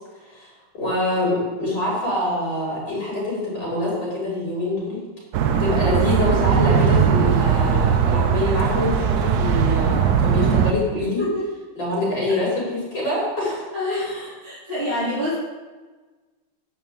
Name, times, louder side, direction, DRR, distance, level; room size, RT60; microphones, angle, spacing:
voice 1, 0.7-5.0 5.6-11.2 11.8-13.6 14.0-14.1, left 2 dB, 65° left, -6 dB, 5.0 m, -25 dB
sound 1, 5.3-10.7, right 7 dB, 65° right, 1.1 m, -19 dB
voice 2, 13.7-14.1 14.4-15.4, left 1 dB, 90° right, -9 dB, 3.4 m, -25 dB
10.5 x 5.4 x 7.8 m, 1.3 s
omnidirectional pair, 2.1 m